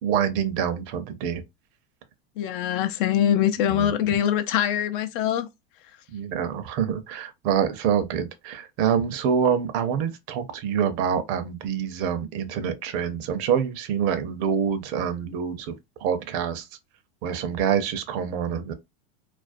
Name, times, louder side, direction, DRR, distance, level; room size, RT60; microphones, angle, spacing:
voice 1, 0.0-1.4 3.7-3.9 6.1-15.7 16.0-16.7 17.2-18.7, right 8 dB, 55° right, 0.6 m, -26 dB
voice 2, 2.4-5.5, left 10 dB, 65° left, 0.5 m, -23 dB
2.4 x 2.1 x 2.4 m
supercardioid pair, 125°, 29 cm